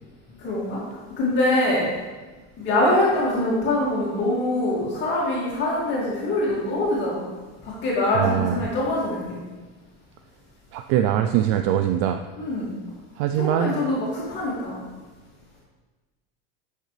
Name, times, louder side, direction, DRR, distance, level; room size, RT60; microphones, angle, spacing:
voice 1, 0.4-1.9 2.6-7.3 7.6-9.4 12.4-12.7 13.4-14.8, left 1 dB, 35° left, -6 dB, 2.4 m, -24 dB
voice 2, 8.1-8.6 10.7-12.2 13.2-13.8, right 11 dB, 60° right, 7 dB, 0.5 m, -22 dB
12.0 x 6.5 x 3.4 m, 1.3 s
cardioid pair, 165°, 31 cm